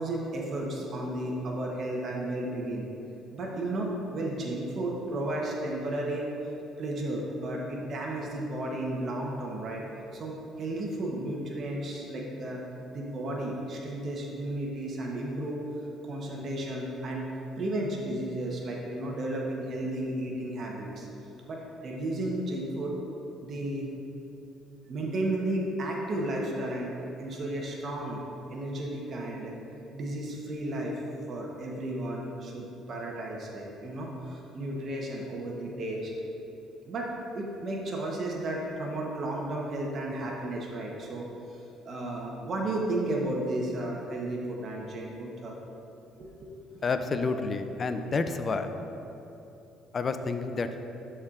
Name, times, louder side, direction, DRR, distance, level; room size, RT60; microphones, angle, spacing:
voice 1, 0.0-2.9 3.3-6.3 6.8-9.8 10.1-12.6 12.9-15.6 16.0-17.3 17.6-21.1 21.5-22.9 23.4-23.9 24.9-28.2 28.5-29.5 29.9-30.9 31.3-36.1 36.9-41.2 41.8-45.5 46.2-46.6, right 1 dB, 50° right, -1 dB, 1.0 m, -33 dB
voice 2, 46.8-48.7 49.9-50.8, left 4 dB, 40° left, 8 dB, 0.4 m, -29 dB
11.5 x 4.4 x 2.5 m, 2.9 s
cardioid pair, 90°, 0 cm